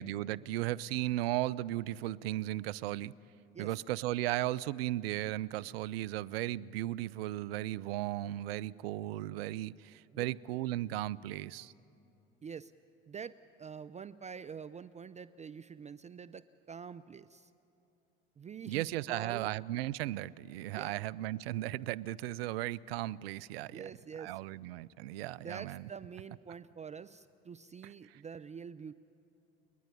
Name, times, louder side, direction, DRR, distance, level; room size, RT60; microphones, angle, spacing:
voice 1, 0.0-3.1 3.6-11.7 18.7-23.9 24.2-25.9, right 15 dB, 80° right, 19 dB, 0.4 m, -36 dB
voice 2, 12.4-12.7 13.1-17.5 18.4-19.5 20.8-21.0 23.7-24.4 25.4-28.9, right 6 dB, 25° right, 14 dB, 0.4 m, -46 dB
29.5 x 10.5 x 9.8 m, 2.9 s
hypercardioid pair, 65°, 29 cm